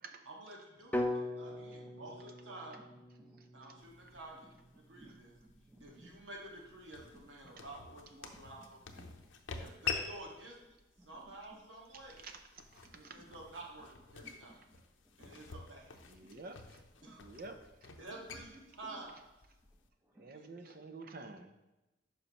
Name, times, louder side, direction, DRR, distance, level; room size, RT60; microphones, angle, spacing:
voice 1, 0.2-2.8 3.5-5.3 5.8-9.1 9.6-10.6 11.0-12.2 12.9-14.6 15.2-15.9 17.0-17.2 18.0-19.2 20.3-20.7, right 2 dB, 85° right, -2 dB, 1.7 m, -50 dB
sound 1, 0.9-5.0, left 1 dB, 10° left, 0.4 m, -40 dB
voice 2, 3.2-3.9 4.9-6.2 8.6-8.7 8.9-9.7 11.0-11.3 13.0-13.3 14.2-14.8 15.2-15.5 16.3-16.4 17.0-17.3 18.1-18.4 18.9-19.1 20.0-20.4, equal, 10° right, 2 dB, 0.8 m, -61 dB
sound 2, 3.8-19.9, left 6 dB, 85° left, 0.7 m, -48 dB
voice 3, 16.1-16.6 17.2-17.6 17.9-18.0 20.2-21.7, right 3 dB, 50° right, 6 dB, 0.6 m, -49 dB
9.4 x 5.7 x 3.0 m, 1.0 s
head